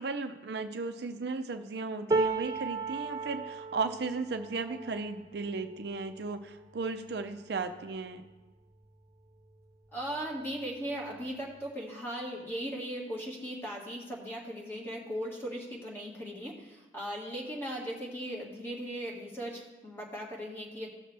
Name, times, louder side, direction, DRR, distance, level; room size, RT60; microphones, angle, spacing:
voice 1, 0.0-8.2, right 4 dB, 65° right, 8 dB, 0.5 m, -35 dB
sound 1, 2.1-8.3 8.8-9.0 9.3-10.1 11.1-11.2, right 3 dB, 20° right, 0.5 m, -36 dB
voice 2, 9.9-20.9, equal, 15° left, -3 dB, 1.9 m, -38 dB
16.0 x 6.5 x 3.4 m, 1.1 s
head